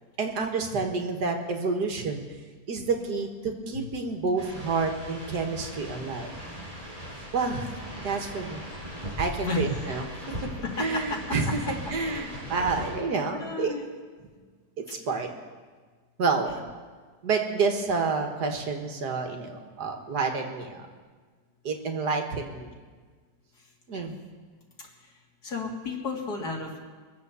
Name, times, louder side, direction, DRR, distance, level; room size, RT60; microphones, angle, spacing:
voice 1, 0.2-2.2 2.7-6.3 7.3-7.7 8.0-8.6 9.2-10.1 10.8-11.6 11.9-13.7 14.8-15.3 16.2-16.5 17.2-20.9 21.6-22.7 23.9-24.1, right 4 dB, 75° right, 4 dB, 2.0 m, -29 dB
sound 1, 4.4-12.9, equal, 20° right, 4.6 m, -39 dB
voice 2, 9.4-9.9 10.8-11.0 13.3-13.8 16.5-16.6 23.5-24.1 25.0-25.1 25.4-26.8, left 4 dB, 70° left, 0 dB, 2.8 m, -33 dB
23.0 x 7.8 x 7.0 m, 1.5 s
omnidirectional pair, 1.8 m